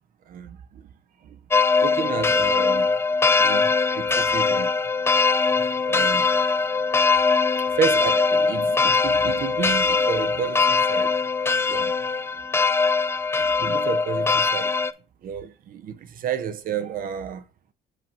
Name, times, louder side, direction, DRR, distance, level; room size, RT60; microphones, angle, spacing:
voice 1, 0.3-0.9 1.2-1.4 1.8-3.0 3.4-4.7 5.8-6.4 6.8-6.9 7.6-11.2 11.7-11.9 13.4-14.7 15.2-17.4, right 7 dB, 55° right, 0.8 m, -31 dB
sound 1, 1.5-14.9, left 4 dB, 15° left, 0.4 m, -21 dB
8.1 x 2.9 x 5.6 m
cardioid pair, 110°, 17 cm